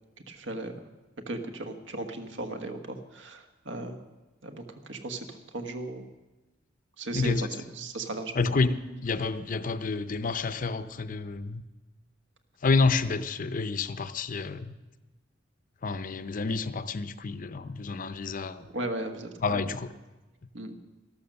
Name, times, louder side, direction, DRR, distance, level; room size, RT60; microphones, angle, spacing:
voice 1, 0.3-0.8 1.3-4.0 4.4-6.1 7.0-7.3 7.8-8.5 18.6-19.6 20.5-20.7, right 2 dB, 75° right, 6 dB, 1.4 m, -36 dB
voice 2, 7.1-7.5 8.3-11.6 12.6-14.7 15.8-18.7 19.4-19.9, left 4 dB, 45° left, 12 dB, 0.6 m, -29 dB
13.5 x 12.5 x 6.6 m, 1.1 s
head